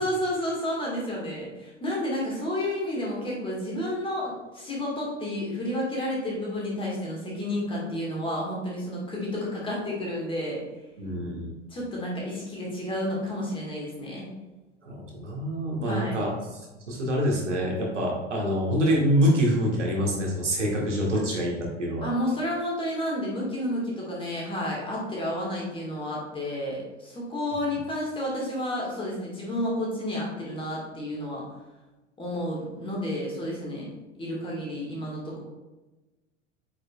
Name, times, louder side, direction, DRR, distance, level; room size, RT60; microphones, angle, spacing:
voice 1, 0.0-10.6 11.7-14.3 15.8-16.2 22.0-31.4 32.2-33.9 34.2-35.4, left 1 dB, 15° left, -4 dB, 1.9 m, -31 dB
voice 2, 11.0-11.5 14.8-16.6 16.9-21.5 21.8-22.1, equal, 75° right, -2 dB, 1.8 m, -26 dB
8.6 x 4.9 x 2.5 m, 1.1 s
figure-of-eight pair, 90°, 37 cm